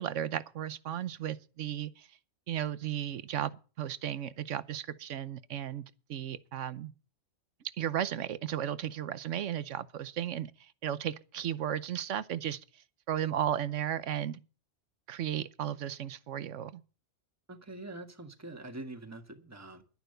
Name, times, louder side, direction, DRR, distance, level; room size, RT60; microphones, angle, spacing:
voice 1, 0.0-2.1 2.5-6.9 7.8-12.6 13.1-14.4 15.1-16.8, right 10 dB, 80° right, 1.1 m, -35 dB
voice 2, 17.5-19.8, right 2 dB, 15° right, 1.5 m, -44 dB
11.5 x 10.5 x 6.7 m
omnidirectional pair, 1.3 m